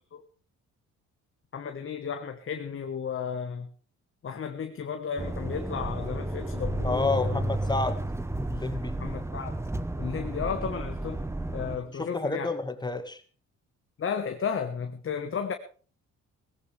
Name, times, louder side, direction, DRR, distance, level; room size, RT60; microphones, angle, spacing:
voice 1, 1.5-3.7 4.2-7.5 8.8-9.6 10.0-12.5 14.0-15.5, left 6 dB, 45° left, 7 dB, 1.4 m, -34 dB
sound 1, 5.2-11.8, right 1 dB, 10° right, 1.1 m, -32 dB
voice 2, 6.8-8.0 8.5-9.0 11.9-13.2, left 3 dB, 15° left, 9 dB, 1.8 m, -30 dB
18.0 x 15.5 x 3.4 m, 0.40 s
cardioid pair, 90°, 30 cm